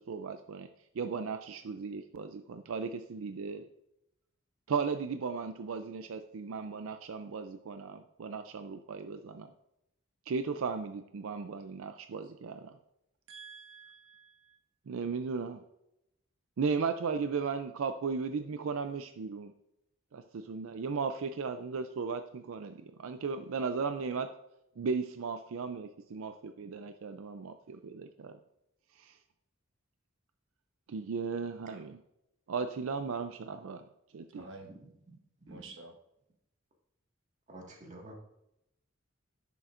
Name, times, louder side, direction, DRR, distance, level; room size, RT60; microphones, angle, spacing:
voice 1, 0.1-0.7 0.9-3.6 4.7-9.5 10.3-12.8 14.9-15.6 16.6-19.5 20.1-24.3 24.8-28.4 29.0-29.2 30.9-32.0 32.5-33.9 34.1-34.4, right 5 dB, 85° right, 0.4 m, -36 dB
voice 2, 13.3-14.6 34.3-34.7 35.5-35.9, right 3 dB, 65° right, 1.1 m, -49 dB
voice 3, 37.5-38.1, right 1 dB, 35° right, 1.7 m, -49 dB
10.0 x 6.9 x 2.5 m
head